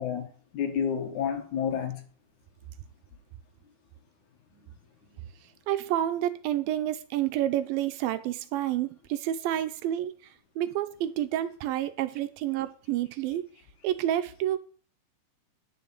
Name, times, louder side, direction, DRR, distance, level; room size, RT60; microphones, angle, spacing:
voice 1, 0.0-2.0, left 7 dB, 60° left, 2.4 m, -30 dB
voice 2, 5.7-10.2 10.6-13.5 13.8-14.6, right 12 dB, 80° right, 2.4 m, -29 dB
9.9 x 5.4 x 7.4 m
omnidirectional pair, 4.3 m